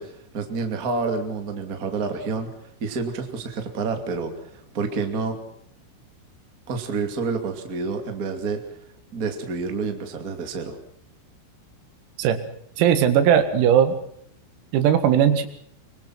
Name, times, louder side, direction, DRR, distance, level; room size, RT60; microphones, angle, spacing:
voice 1, 0.0-5.4 6.7-8.8 9.1-10.8, right 4 dB, 30° right, 5 dB, 1.6 m, -29 dB
voice 2, 12.8-13.9 14.7-15.5, right 9 dB, 90° right, 9 dB, 4.6 m, -18 dB
25.0 x 23.0 x 6.0 m, 0.67 s
omnidirectional pair, 6.0 m